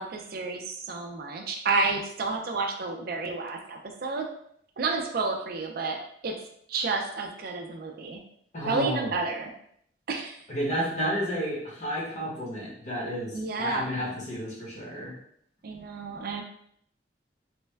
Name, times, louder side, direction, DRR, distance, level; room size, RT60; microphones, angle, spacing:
voice 1, 0.0-4.3 4.8-6.4 6.7-8.2 8.7-9.5 10.1-10.4 13.3-14.0 15.6-16.4, right 3 dB, 55° right, 3 dB, 0.4 m, -30 dB
voice 2, 8.5-9.1 10.5-15.1, equal, 45° left, -4 dB, 1.1 m, -31 dB
3.3 x 2.2 x 3.2 m, 0.68 s
head